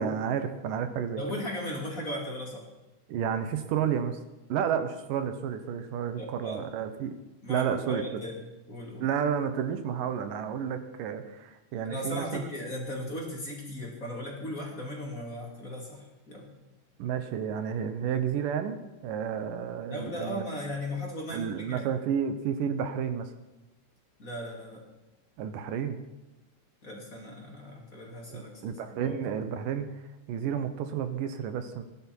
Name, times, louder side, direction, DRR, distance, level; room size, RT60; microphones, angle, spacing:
voice 1, 0.0-1.4 3.1-4.2 4.5-7.2 7.5-8.2 9.0-12.5 17.0-20.5 21.3-23.3 25.4-26.0 28.3-29.9 30.3-31.8, right 8 dB, 85° right, 9 dB, 2.8 m, -31 dB
voice 2, 1.2-2.7 6.2-6.6 7.4-9.0 11.8-16.5 19.9-21.8 24.2-24.9 26.8-29.2, left 1 dB, 25° left, -1 dB, 2.7 m, -37 dB
20.5 x 11.5 x 4.6 m, 1.0 s
omnidirectional pair, 3.7 m